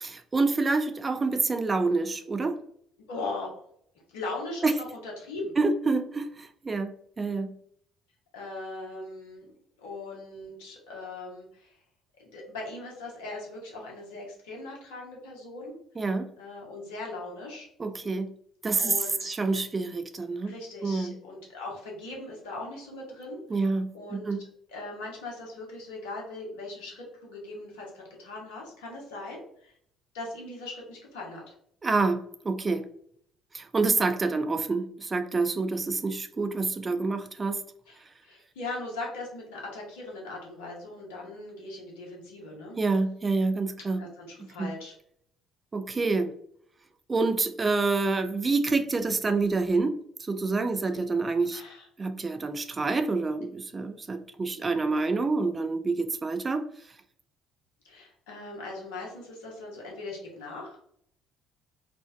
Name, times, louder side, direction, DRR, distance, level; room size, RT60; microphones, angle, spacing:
voice 1, 0.0-2.6 4.6-4.7 5.6-7.6 16.0-16.3 17.8-18.3 18.6-20.5 20.8-21.2 23.5-24.5 31.8-32.9 33.5-37.7 42.8-44.0 44.6-44.7 45.7-46.3 47.1-51.6 52.0-56.7, right 3 dB, 30° right, 0.3 m, -27 dB
voice 2, 3.1-3.5 4.1-5.5 8.3-9.5 9.8-11.7 12.2-15.7 16.4-17.7 18.8-19.3 20.4-23.6 23.9-24.3 24.7-29.7 30.1-31.5 37.9-42.8 43.9-44.9 51.5-51.9 57.8-60.8, left 2 dB, 75° left, 0.7 m, -39 dB
2.6 x 2.1 x 2.3 m
figure-of-eight pair, 50°, 0 cm